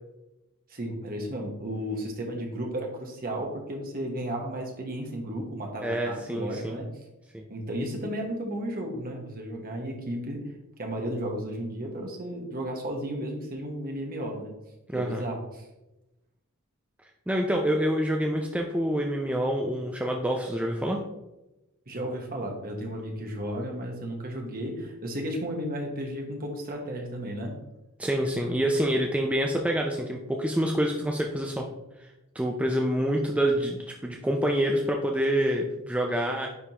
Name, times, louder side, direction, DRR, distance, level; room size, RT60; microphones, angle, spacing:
voice 1, 0.7-6.9 7.5-10.4 10.8-14.5 14.9-15.7 21.9-27.6 33.3-33.4, equal, 45° right, 1 dB, 1.2 m, -34 dB
voice 2, 5.8-6.8 7.3-7.5 14.9-15.3 17.3-21.0 28.0-31.6 32.0-32.1 32.3-36.5, equal, 5° right, 1 dB, 0.4 m, -27 dB
9.5 x 3.4 x 2.9 m, 0.96 s
head